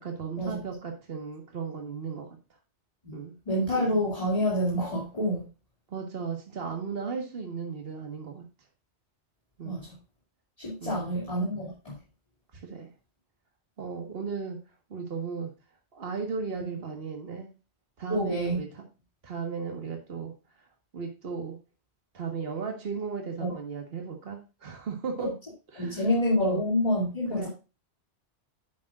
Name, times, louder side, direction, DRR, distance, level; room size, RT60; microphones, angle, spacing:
voice 1, 0.0-2.3 3.1-3.3 5.9-8.4 9.6-9.8 10.8-11.2 12.6-12.9 13.8-14.6 14.9-15.5 15.9-17.5 18.0-18.8 19.2-20.3 20.9-21.6 22.1-25.3 25.7-26.1 26.4-26.6 27.3-27.5, right 5 dB, 65° right, 2 dB, 1.8 m, -35 dB
voice 2, 3.5-5.4 9.6-9.9 10.6-12.0 18.1-18.6 23.4-23.5 25.2-25.3 25.8-27.5, equal, 35° left, -6 dB, 2.8 m, -27 dB
10.0 x 7.3 x 2.4 m, 0.30 s
omnidirectional pair, 1.1 m